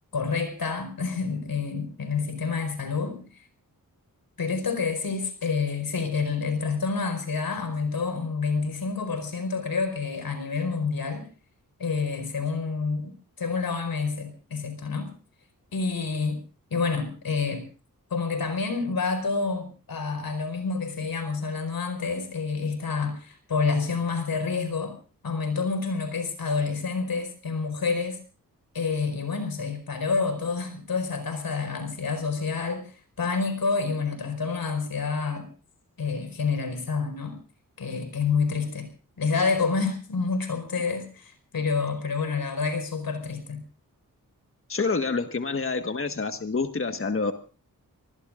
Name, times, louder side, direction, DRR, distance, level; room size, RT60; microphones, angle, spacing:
voice 1, 0.1-3.2 4.4-11.3 11.8-13.1 13.4-15.1 15.7-16.4 16.7-17.6 18.1-25.0 25.2-28.2 28.7-32.9 33.2-35.5 36.0-37.4 37.8-38.9 39.2-43.6, left 4 dB, 85° left, 8 dB, 4.8 m, -28 dB
voice 2, 44.7-47.3, left 4 dB, 40° left, 7 dB, 1.5 m, -27 dB
26.0 x 19.5 x 2.5 m, 0.37 s
cardioid pair, 70°, 35 cm